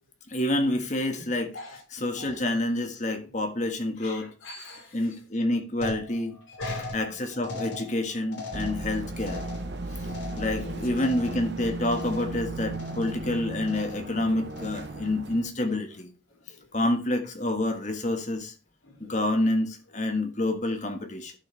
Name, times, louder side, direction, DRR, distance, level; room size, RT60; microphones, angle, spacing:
voice 1, 0.3-1.5 1.9-4.3 4.9-6.3 6.9-9.4 10.4-16.1 16.7-18.5 19.0-21.3, left 1 dB, 35° left, 1.5 m, -28 dB
voice 2, 1.5-2.4 3.2-3.3 4.0-5.1 6.5-7.0 10.5-10.9 16.5-16.7 18.8-19.2, left 2 dB, 90° left, 3.8 m, -43 dB
sound 1, 5.8-11.6 11.9-12.4 12.7-13.3 13.6-14.1 14.5-15.1, left 3 dB, 60° left, 3.2 m, -40 dB
sound 2, 8.5-15.5, right 2 dB, 55° right, 1.0 m, -35 dB
11.5 x 6.5 x 3.3 m
head